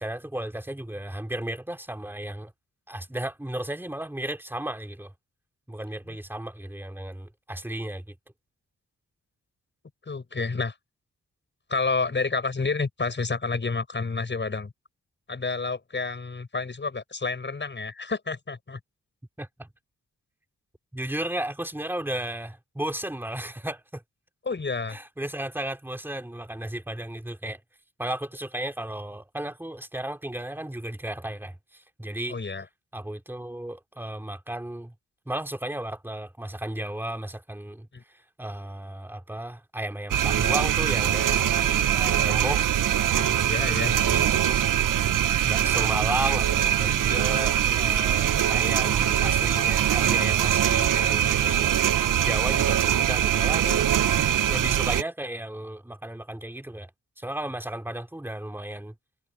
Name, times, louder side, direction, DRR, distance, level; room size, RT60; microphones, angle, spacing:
voice 1, 0.0-2.5 2.9-5.1 5.7-8.1 19.4-19.7 20.9-24.0 24.9-27.6 28.0-32.4 32.9-34.9 35.3-42.6 43.2-44.6 45.4-53.9 54.5-56.9 57.2-58.9, right 1 dB, 5° right, 2.6 m, -34 dB
voice 2, 10.1-10.7 11.7-14.7 15.3-18.8 24.5-25.0 32.3-32.6 37.9-38.0 43.5-43.9, left 4 dB, 35° left, 6.3 m, -29 dB
sound 1, 40.1-55.0, right 10 dB, 75° right, 0.6 m, -23 dB
wide cardioid pair, 165°, 32 cm